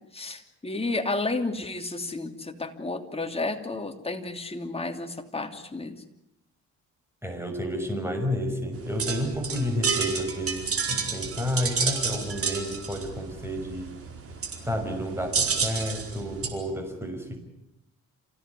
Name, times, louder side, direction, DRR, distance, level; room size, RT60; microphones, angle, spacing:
voice 1, 0.1-6.0, left 2 dB, 20° left, 5 dB, 2.9 m, -32 dB
voice 2, 7.2-13.9 14.6-17.4, equal, 10° right, 5 dB, 6.1 m, -31 dB
sound 1, 8.7-16.5, right 5 dB, 50° right, 4.5 m, -30 dB
28.0 x 16.5 x 9.7 m, 0.83 s
cardioid pair, 90°, 30 cm